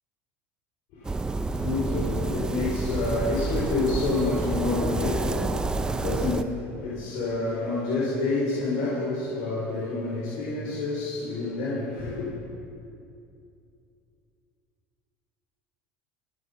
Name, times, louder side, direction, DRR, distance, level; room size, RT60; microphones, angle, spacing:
voice 1, 0.9-12.3, left 3 dB, 75° left, -7 dB, 4.3 m, -29 dB
sound 1, 1.0-6.4, right 3 dB, 15° right, 0.5 m, -29 dB
26.0 x 9.4 x 5.6 m, 2.6 s
supercardioid pair, 115°, 6 cm